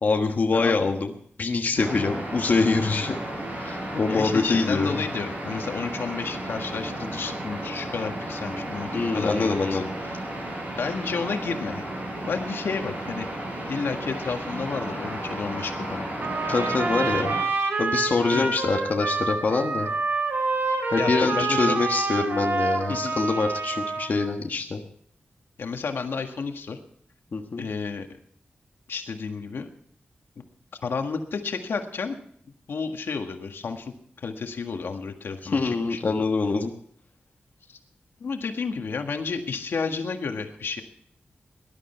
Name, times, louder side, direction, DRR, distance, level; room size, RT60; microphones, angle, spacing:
voice 1, 0.0-1.1 1.4-3.1 3.6-5.0 8.9-9.9 16.5-17.4 17.8-19.9 20.9-24.8 27.3-27.7 35.5-36.7, left 4 dB, 50° left, 3 dB, 1.3 m, -24 dB
sound 1, 1.8-17.4, right 1 dB, 45° right, 6.0 m, -33 dB
voice 2, 4.1-9.8 10.8-11.8 12.1-13.3 13.6-16.1 16.4-16.5 18.3-18.5 21.0-21.8 22.9-23.2 25.6-26.8 27.6-28.1 28.9-29.7 30.4-30.5 30.8-32.2 32.7-36.2 37.7-37.8 38.2-40.8, left 5 dB, 80° left, 5 dB, 1.7 m, -31 dB
Trumpet, 16.2-24.3, right 3 dB, 65° right, 3.2 m, -27 dB
19.0 x 12.0 x 4.5 m, 0.63 s
wide cardioid pair, 155°, 4 cm